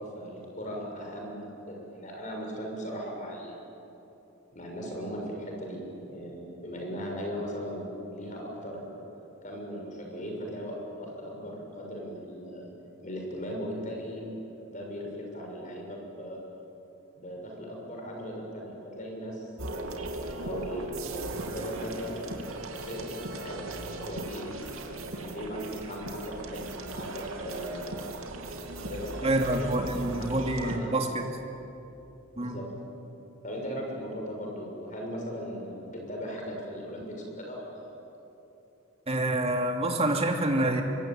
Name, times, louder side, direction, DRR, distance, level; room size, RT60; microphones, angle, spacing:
voice 1, 0.0-3.7 4.5-9.0 9.4-12.7 13.0-14.2 14.7-16.6 17.1-20.0 20.4-22.2 22.7-27.9 28.8-29.9 30.2-31.1 32.4-32.7 33.4-38.0, equal, 40° left, 0 dB, 6.6 m, -38 dB
sound 1, 19.6-30.8, right 2 dB, 90° right, 2.7 m, -38 dB
voice 2, 29.2-31.3 32.4-32.6 39.1-40.8, right 1 dB, 30° right, 2 dB, 2.7 m, -27 dB
25.5 x 23.0 x 9.1 m, 3.0 s
head